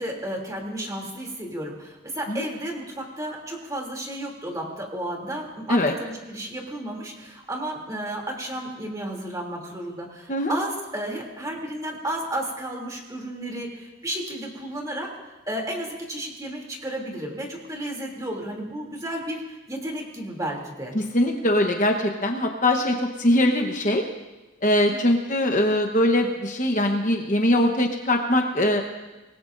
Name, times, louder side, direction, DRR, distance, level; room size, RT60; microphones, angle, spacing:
voice 1, 0.0-15.1 15.5-21.0 24.9-25.2, right 1 dB, 15° right, 0 dB, 3.0 m, -33 dB
voice 2, 20.9-24.0 24.6-28.8, left 1 dB, 40° left, 3 dB, 1.1 m, -22 dB
25.5 x 20.0 x 2.6 m, 1.1 s
head